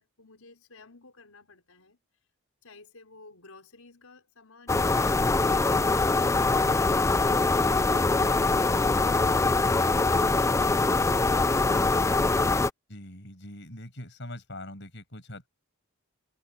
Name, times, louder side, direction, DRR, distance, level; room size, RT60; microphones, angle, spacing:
voice 1, 0.0-2.0 2.6-8.1 8.6-11.3, left 3 dB, 90° left, 5.7 m, -54 dB
sound 1, 4.7-12.7, left 3 dB, 15° left, 0.3 m, -23 dB
voice 2, 12.9-15.5, left 1 dB, 55° left, 7.9 m, -42 dB
head